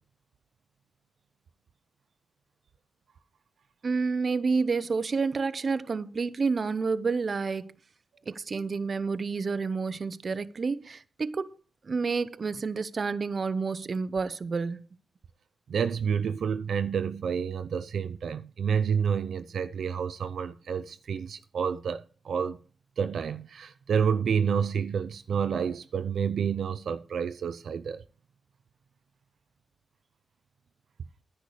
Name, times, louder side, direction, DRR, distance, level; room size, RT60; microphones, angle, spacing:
voice 1, 3.8-7.7 8.3-11.5 11.8-14.8, right 4 dB, 50° right, 0.8 m, -29 dB
voice 2, 15.7-22.6 23.0-28.0, right 7 dB, 80° right, 0.6 m, -29 dB
10.5 x 10.0 x 5.0 m
cardioid pair, 95°, 0 cm